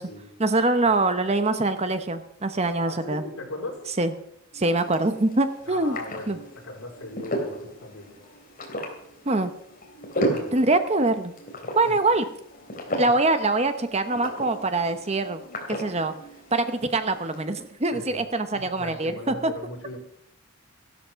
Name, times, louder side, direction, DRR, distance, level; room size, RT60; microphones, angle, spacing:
voice 1, 0.4-3.2 4.0-4.1 4.5-6.0 6.3-6.4 9.3-9.5 10.5-11.3 11.8-12.2 13.0-15.4 15.7-16.1 16.5-19.5, right 2 dB, 30° right, 10 dB, 0.8 m, -24 dB
voice 2, 2.9-3.9 5.7-6.3 6.6-8.1 10.2-10.7 11.8-12.0 13.0-13.1 17.9-18.2 18.5-20.0, left 2 dB, 75° left, 0 dB, 4.3 m, -38 dB
sound 1, 4.5-17.4, equal, 40° left, 3.0 m, -35 dB
14.5 x 12.5 x 5.7 m, 0.73 s
head